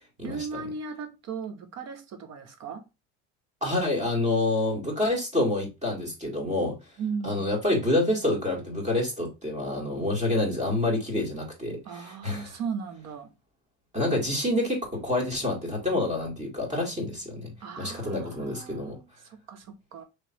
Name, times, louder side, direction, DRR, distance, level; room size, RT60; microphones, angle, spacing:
voice 1, 0.2-2.8 7.0-7.5 11.9-13.3 17.6-20.0, right 5 dB, 50° right, 1.0 m, -37 dB
voice 2, 3.6-6.8 7.2-12.6 13.9-19.0, left 2 dB, 20° right, 1.9 m, -27 dB
3.3 x 3.0 x 4.3 m
cardioid pair, 120°, 33 cm